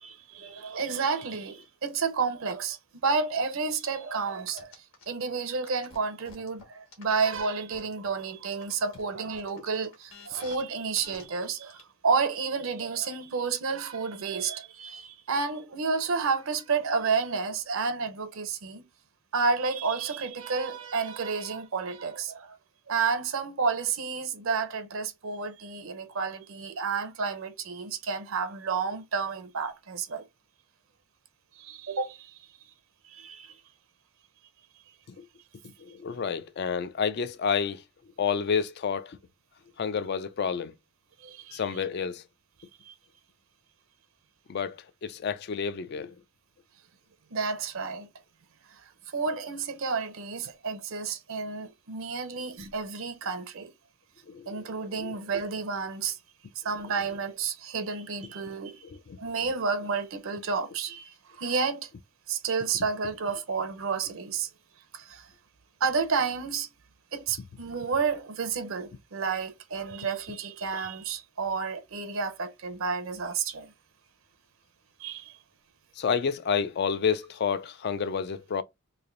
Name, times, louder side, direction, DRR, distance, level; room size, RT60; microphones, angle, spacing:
voice 1, 0.0-4.7 5.1-18.8 19.3-22.6 22.9-30.2 31.6-32.4 33.0-33.6 41.2-41.8 42.8-42.9 47.3-48.1 48.7-53.7 54.5-56.2 56.6-58.9 59.2-61.9 62.3-64.5 64.9-65.3 65.8-66.7 67.1-73.7 75.0-75.4, right 5 dB, 65° right, 0.6 m, -31 dB
sound 1, 4.5-5.1 5.6-8.1 8.5-10.6 11.0-11.2 11.7-11.8, left 3 dB, 65° left, 1.5 m, -50 dB
voice 2, 35.6-37.8 38.2-39.2 39.8-40.7 41.5-42.2 44.5-46.2 54.3-54.7 55.0-55.2 59.1-59.2 76.0-78.6, left 6 dB, 50° left, 0.3 m, -29 dB
3.3 x 2.5 x 3.7 m
head